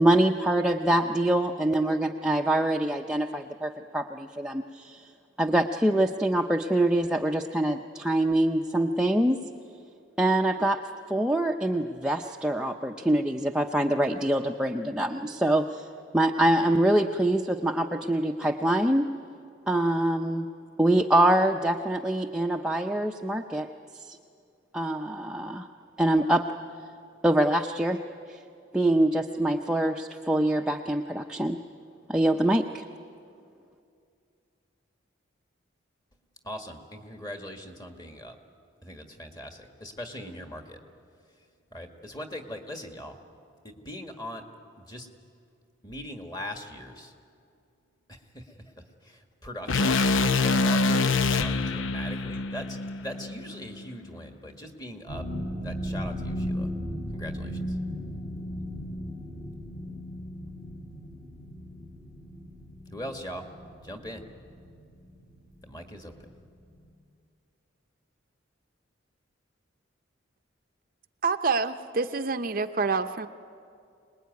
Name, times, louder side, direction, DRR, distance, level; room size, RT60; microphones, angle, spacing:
voice 1, 0.0-5.0 5.4-9.4 10.2-15.9 16.1-19.2 19.7-20.5 20.8-23.7 24.1-24.2 24.7-25.7 26.0-26.7 27.2-28.0 28.3-28.4 28.7-31.6 32.1-32.9, right 1 dB, 5° right, 2 dB, 0.6 m, -25 dB
voice 2, 36.4-38.4 38.8-40.8 41.3-43.2 43.6-44.5 44.8-45.1 45.8-47.1 48.1-50.0 50.4-55.3 55.6-56.7 57.1-57.8 62.9-63.5 63.8-64.2 65.6-66.2, equal, 20° left, 4 dB, 1.8 m, -40 dB
sound 1, 49.7-53.9, left 3 dB, 85° left, 0.7 m, -25 dB
sound 2, 55.1-65.8 66.1-66.4 66.8-66.9, equal, 45° left, 3.6 m, -36 dB
voice 3, 71.2-73.3, right 4 dB, 45° right, 9 dB, 0.6 m, -27 dB
25.5 x 20.5 x 9.4 m, 2.4 s
head